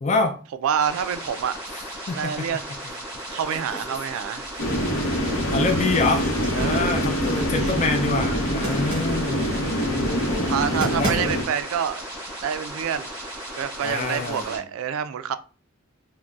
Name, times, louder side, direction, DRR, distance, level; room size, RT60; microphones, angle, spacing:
voice 1, 0.0-0.4 2.1-2.3 3.3-3.4 5.5-6.2 6.6-9.6 10.0-10.5 11.0-11.4 13.8-14.6, left 3 dB, 35° left, 0.4 m, -26 dB
voice 2, 0.6-1.6 2.2-2.6 3.3-4.5 6.5-6.9 7.3-7.8 10.5-12.0 12.4-13.1 13.6-15.3, right 8 dB, 80° right, 0.3 m, -27 dB
sound 1, 0.7-14.6, right 1 dB, 15° left, 1.1 m, -36 dB
sound 2, 4.3-5.0 5.4-7.6 8.6-9.2 10.5-10.6 10.8-11.6, right 1 dB, 20° right, 0.8 m, -34 dB
sound 3, 4.6-11.4, equal, 70° left, 0.8 m, -25 dB
3.8 x 2.1 x 2.4 m
head